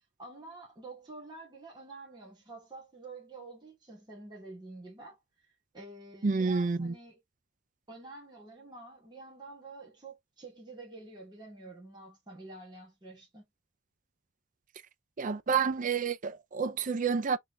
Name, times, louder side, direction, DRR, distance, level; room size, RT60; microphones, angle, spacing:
voice 1, 0.2-5.2 5.7-7.2 7.9-13.5, right 2 dB, 20° right, 2.1 m, -48 dB
voice 2, 6.2-6.9 15.2-17.4, right 5 dB, 40° right, 0.5 m, -29 dB
3.8 x 3.6 x 3.3 m
head